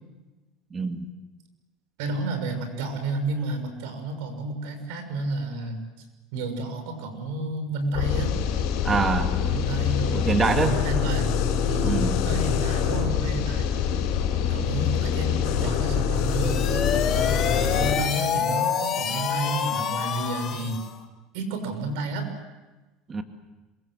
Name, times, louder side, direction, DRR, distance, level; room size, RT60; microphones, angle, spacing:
voice 1, 0.7-1.1 8.8-9.3 10.1-10.9 11.8-12.2 23.1-23.2, right 5 dB, 25° right, 6 dB, 2.2 m, -25 dB
voice 2, 2.0-5.8 6.3-8.3 9.3-11.3 11.6-13.7 14.5-20.8 21.3-22.3, right 2 dB, 80° right, 7 dB, 6.4 m, -31 dB
sound 1, 7.9-17.9, left 8 dB, 70° left, 5.4 m, -25 dB
sound 2, 16.2-21.0, left 8 dB, 35° left, 2.8 m, -27 dB
27.0 x 23.5 x 8.0 m, 1.1 s
cardioid pair, 135°, 0 cm